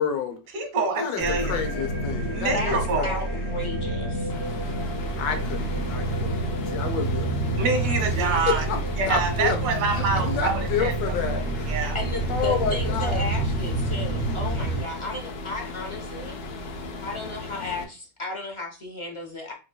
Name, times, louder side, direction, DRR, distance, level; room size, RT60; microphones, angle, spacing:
voice 1, 0.0-0.4 1.0-3.2 5.2-7.6 8.1-8.8 9.1-9.6 9.9-11.8 12.3-13.2, left 7 dB, 85° left, 1.4 m, -30 dB
voice 2, 0.5-1.6 2.3-3.2 7.6-8.7 9.0-12.0, right 4 dB, 70° right, 1.5 m, -26 dB
sound 1, 1.2-14.8, right 2 dB, 15° left, 1.4 m, -28 dB
voice 3, 3.0-4.5 11.9-16.4 17.0-19.5, left 2 dB, 40° left, 0.4 m, -34 dB
sound 2, 4.3-17.8, left 2 dB, 70° left, 1.2 m, -37 dB
4.7 x 3.8 x 2.2 m
omnidirectional pair, 1.9 m